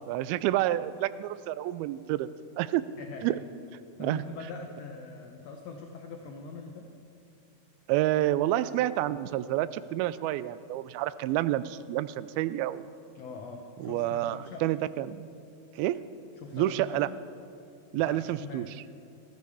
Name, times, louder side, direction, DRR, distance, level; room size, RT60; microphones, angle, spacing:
voice 1, 0.1-2.3 2.6-2.8 3.2-3.4 4.0-4.2 7.9-12.9 13.8-15.3 15.8-16.0 16.5-17.1 17.9-18.7, right 14 dB, 90° right, 16 dB, 2.4 m, -29 dB
voice 2, 3.0-3.4 4.0-6.9 13.1-14.7 16.4-16.9 17.9-18.7, left 4 dB, 70° left, 2 dB, 1.6 m, -42 dB
18.5 x 14.0 x 4.8 m, 2.5 s
omnidirectional pair, 4.2 m